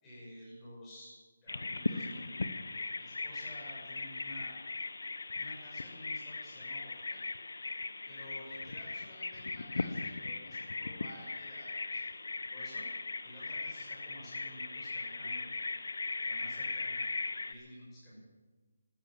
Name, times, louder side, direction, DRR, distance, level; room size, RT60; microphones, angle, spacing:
voice 1, 0.0-1.1 1.4-2.5 3.0-4.5 5.3-7.2 8.1-12.1 12.5-12.9 13.2-15.5 16.2-17.1 17.4-18.2, equal, 10° left, -6 dB, 6.5 m, -51 dB
Bird vocalization bird call bird song, 1.5-17.5, left 3 dB, 80° left, 0.9 m, -38 dB
14.0 x 13.5 x 7.6 m, 1.3 s
hypercardioid pair, 175°, 0 cm